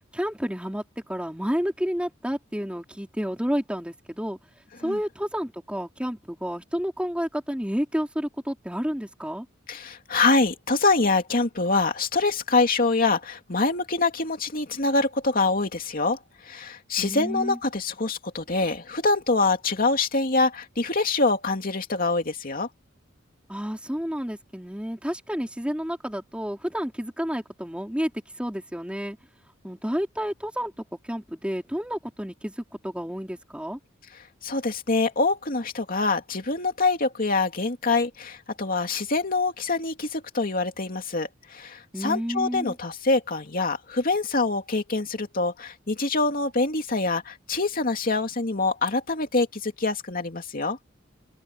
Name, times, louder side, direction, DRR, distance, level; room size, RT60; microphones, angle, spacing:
voice 1, 0.1-0.8 1.1-4.4 4.8-9.5 17.0-17.6 23.5-28.1 28.4-29.2 29.6-30.7 31.0-32.5 32.8-33.8 41.9-42.8, equal, 5° right, 3.9 m, -30 dB
voice 2, 9.7-22.7 34.4-50.8, left 3 dB, 45° left, 2.7 m, -25 dB
open air
head